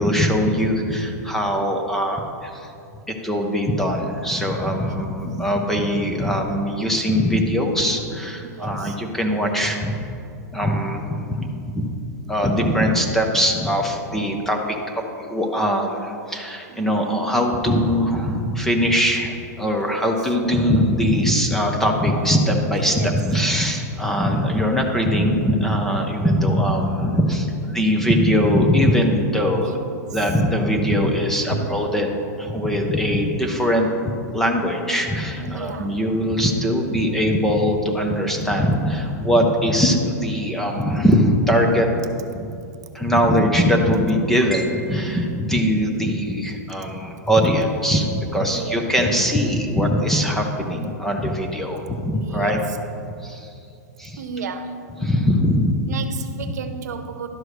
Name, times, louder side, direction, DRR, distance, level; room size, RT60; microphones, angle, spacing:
voice 1, 0.0-2.7 3.1-10.0 10.5-11.9 12.3-29.8 30.1-32.1 32.4-33.9 34.3-41.9 42.3-42.5 42.9-52.6 53.2-53.6 54.0-54.2 55.0-55.8, equal, 5° left, 2 dB, 0.4 m, -21 dB
voice 2, 4.6-5.1 8.4-9.0 16.7-17.1 19.7-20.1 22.8-23.2 29.6-29.8 30.1-30.2 31.5-31.9 33.3-33.9 35.4-36.0 46.8-46.9 47.2-47.3 48.4-48.8 52.2-52.8 54.2-54.8 55.9-57.3, right 5 dB, 70° right, 9 dB, 0.8 m, -34 dB
11.5 x 4.8 x 6.2 m, 2.6 s
supercardioid pair, 175°, 9 cm